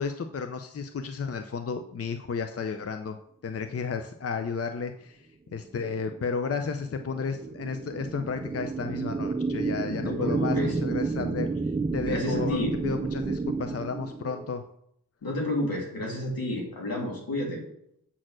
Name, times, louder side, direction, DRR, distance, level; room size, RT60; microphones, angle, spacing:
voice 1, 0.0-3.2 3.4-5.3 5.5-11.5 11.9-14.6, left 5 dB, 40° left, 8 dB, 0.6 m, -33 dB
sound 1, 5.8-14.6, right 4 dB, 20° right, 0.4 m, -31 dB
voice 2, 10.0-10.7 12.1-12.8 15.2-17.6, left 1 dB, 80° left, -2 dB, 2.7 m, -30 dB
7.4 x 4.3 x 6.2 m, 0.73 s
cardioid pair, 60°, 35 cm